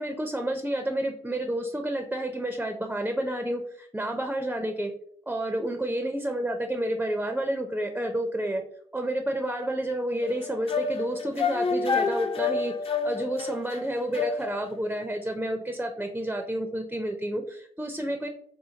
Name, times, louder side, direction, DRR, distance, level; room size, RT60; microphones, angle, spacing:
voice 1, 0.0-4.9 5.3-8.6 8.9-12.7 13.0-18.3, right 1 dB, 10° right, 5 dB, 0.5 m, -30 dB
sound 1, 10.2-14.8, left 5 dB, 40° left, 0.5 m, -29 dB
4.3 x 2.2 x 2.7 m, 0.64 s
supercardioid pair, 45°, 15 cm